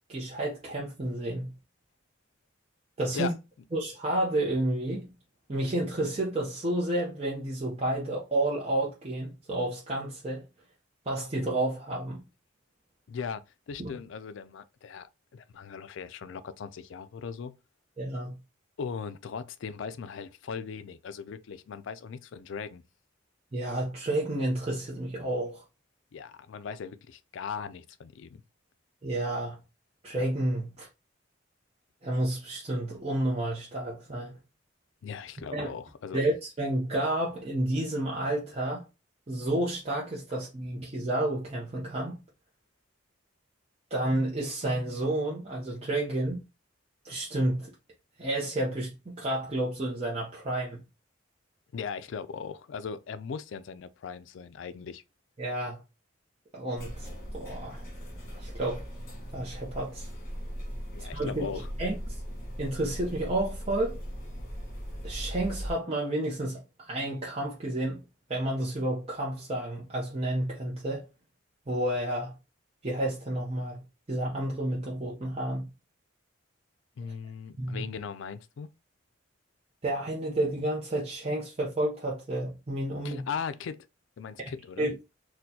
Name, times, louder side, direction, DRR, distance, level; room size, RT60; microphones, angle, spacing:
voice 1, 0.1-1.5 3.0-3.3 3.7-5.1 5.5-10.4 11.1-12.2 13.8-13.9 18.0-18.4 23.5-25.6 29.0-29.6 30.0-30.9 32.0-34.4 35.5-35.7 36.1-38.8 39.3-42.2 43.9-46.4 47.0-47.7 48.2-50.8 55.4-55.8 56.5-57.1 57.3-57.8 58.4-58.8 59.3-60.1 61.0-62.2 62.6-64.0 65.0-68.0 68.3-71.1 71.7-72.3 72.8-73.8 74.1-75.7 77.6-77.8 79.8-83.3 84.8-85.0, right 1 dB, 30° right, 0.6 m, -30 dB
voice 2, 13.1-17.5 18.8-22.8 26.1-28.4 35.0-36.2 51.7-55.0 60.9-61.7 77.0-78.7 83.0-83.9 84.2-84.9, left 6 dB, 70° left, 0.3 m, -38 dB
sound 1, 56.8-65.7, equal, 45° left, 1.5 m, -39 dB
4.2 x 2.2 x 2.7 m
head